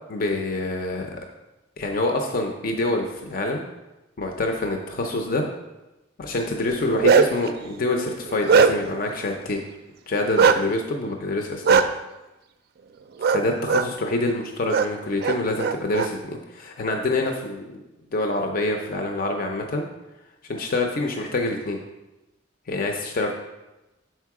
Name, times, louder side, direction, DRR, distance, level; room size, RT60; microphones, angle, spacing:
voice 1, 0.1-1.2 1.8-3.6 4.2-5.4 6.2-9.6 10.1-11.4 11.7-11.8 13.3-17.8 18.1-19.9 20.5-21.8 22.7-23.3, left 2 dB, 45° left, 3 dB, 0.5 m, -26 dB
Bark, 6.7-7.5 8.0-9.0 10.4-10.6 11.6-11.8 13.2-13.4 13.7-13.8 14.7-14.8 15.2-16.1, right 6 dB, 50° right, 0.4 m, -18 dB
6.5 x 4.5 x 4.7 m, 1.0 s
head